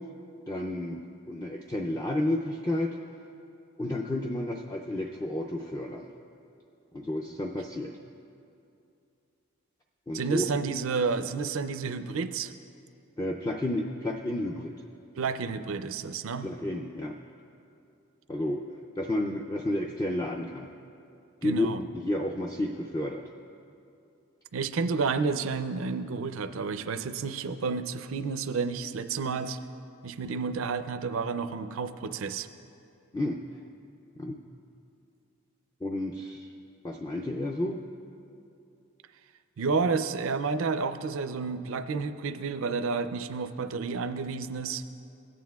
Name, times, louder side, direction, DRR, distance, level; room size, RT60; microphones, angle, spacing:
voice 1, 0.5-3.0 3.8-6.1 6.9-7.9 10.1-10.4 13.2-14.8 16.4-17.2 18.3-18.6 19.0-20.7 21.4-21.7 21.9-23.2 33.1-33.4 34.2-34.3 35.8-36.5 36.8-37.8, left 1 dB, 15° left, 1 dB, 0.3 m, -31 dB
voice 2, 10.1-12.5 15.2-16.5 21.4-21.8 24.5-29.6 30.0-32.5 39.6-44.8, right 4 dB, 70° right, 10 dB, 0.4 m, -30 dB
17.0 x 9.4 x 2.3 m, 2.6 s
head